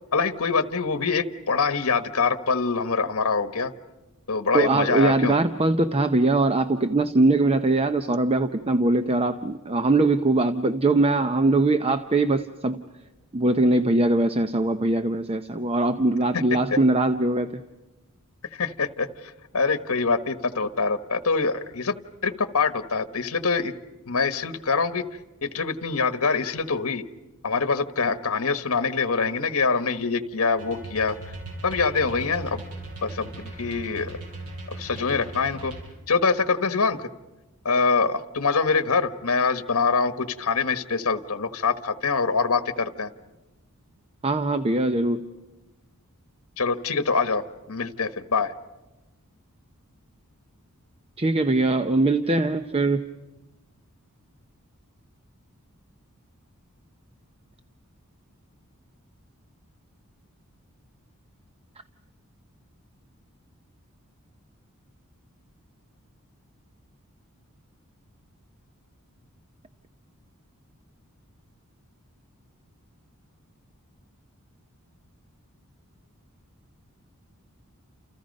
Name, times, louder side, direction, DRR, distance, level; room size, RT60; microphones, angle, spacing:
voice 1, 0.1-3.7 4.3-5.4 9.4-9.5 16.3-16.8 18.5-21.9 22.2-23.7 24.1-27.0 27.4-31.2 31.6-32.6 33.0-34.2 34.7-35.7 36.1-37.1 37.6-43.1 46.6-48.5, left 4 dB, 70° left, 10 dB, 1.3 m, -25 dB
voice 2, 4.5-12.8 13.3-17.6 44.2-45.2 51.2-53.0, right 2 dB, 25° right, 9 dB, 0.7 m, -22 dB
sound 1, 30.6-35.8, right 2 dB, 70° right, 7.7 m, -38 dB
30.0 x 28.5 x 5.3 m, 1.1 s
head